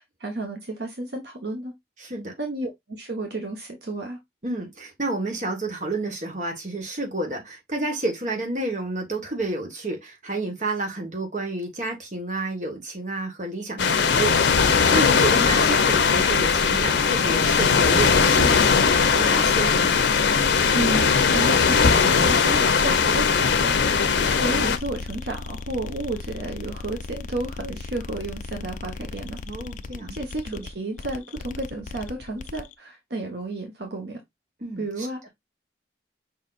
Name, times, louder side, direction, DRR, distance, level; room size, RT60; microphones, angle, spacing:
voice 1, 0.2-1.7 2.4-4.2 20.7-29.4 30.1-34.2 34.8-35.3, right 2 dB, 70° right, 1.1 m, -32 dB
voice 2, 2.0-2.3 4.4-20.0 29.5-30.2 30.5-30.6 34.6-35.1, right 2 dB, 40° right, 1.5 m, -30 dB
sound 1, 13.8-24.8, left 5 dB, 85° left, 0.7 m, -19 dB
sound 2, 14.6-32.7, left 3 dB, 45° left, 0.4 m, -37 dB
5.3 x 4.0 x 2.4 m
head